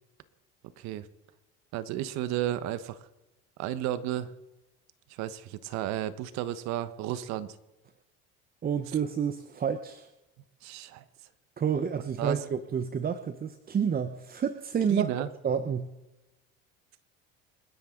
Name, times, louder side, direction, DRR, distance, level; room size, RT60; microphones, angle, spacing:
voice 1, 0.8-1.1 1.7-3.0 3.6-4.3 5.1-7.6 10.6-11.0 12.2-12.4 14.9-15.3, right 12 dB, 65° right, 14 dB, 1.3 m, -33 dB
voice 2, 8.6-10.1 11.6-15.1 15.4-15.9, right 7 dB, 30° right, 10 dB, 1.0 m, -29 dB
28.5 x 10.5 x 3.9 m, 0.99 s
supercardioid pair, 95°, 29 cm